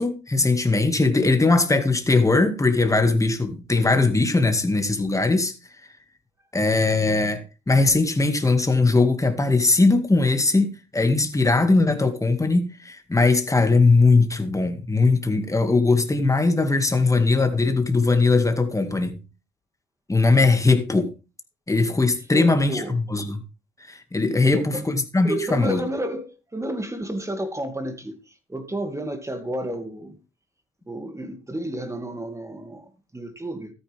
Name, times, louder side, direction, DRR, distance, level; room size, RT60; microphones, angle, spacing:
voice 1, 0.0-5.5 6.5-19.2 20.1-21.1 21.7-23.4 23.9-25.8, left 3 dB, 15° left, 2.1 m, -20 dB
voice 2, 22.3-23.0 24.6-24.9 25.2-30.2 30.9-33.7, right 1 dB, 15° right, 2.4 m, -31 dB
13.5 x 9.7 x 3.5 m
cardioid pair, 90°, 20 cm